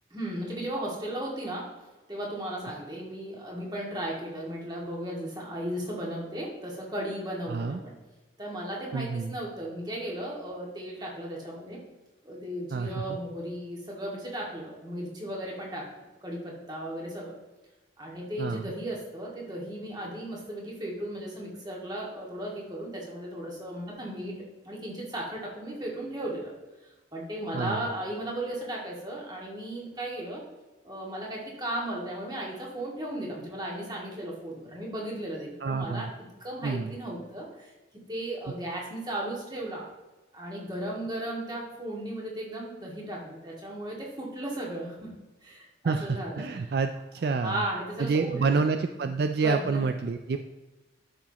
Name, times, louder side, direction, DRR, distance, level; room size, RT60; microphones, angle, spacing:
voice 1, 0.1-1.7 2.1-7.9 8.4-11.8 12.2-15.9 16.2-17.3 18.0-24.4 24.6-26.5 26.8-30.4 30.8-36.1 36.4-37.7 38.1-39.9 40.3-45.1 45.4-46.5 47.2-48.7 49.0-49.8, right 1 dB, 20° right, -3 dB, 2.1 m, -36 dB
voice 2, 7.5-7.8 8.9-9.3 12.7-12.9 18.4-18.6 27.5-27.9 35.6-36.1 36.6-37.0 45.8-47.6 48.0-50.4, right 4 dB, 55° right, 7 dB, 0.4 m, -28 dB
12.5 x 6.1 x 3.0 m, 1.1 s
head